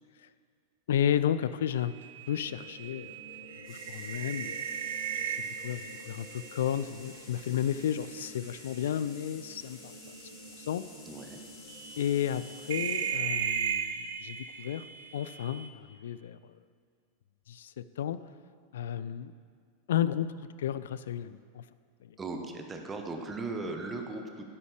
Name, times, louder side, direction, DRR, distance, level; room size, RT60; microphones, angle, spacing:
voice 1, 0.9-2.0 2.3-3.2 3.7-4.6 5.6-10.0 10.6-10.8 12.0-14.8 15.1-16.5 17.5-18.2 18.7-19.3 19.9-20.3 20.6-21.6, left 10 dB, 60° left, 15 dB, 0.3 m, -32 dB
sound 1, 1.8-8.1 8.5-8.9 10.1-10.2 10.7-10.8 11.7-15.7, right 8 dB, 60° right, 0.5 m, -37 dB
sound 2, 2.3-12.8, equal, 90° left, 1.5 m, -52 dB
sound 3, 3.6-13.2, left 4 dB, 30° left, 1.9 m, -53 dB
voice 2, 11.0-11.4 22.2-24.5, right 3 dB, 15° right, 4 dB, 1.0 m, -37 dB
12.0 x 10.0 x 3.3 m, 2.1 s
figure-of-eight pair, 90°, 0 cm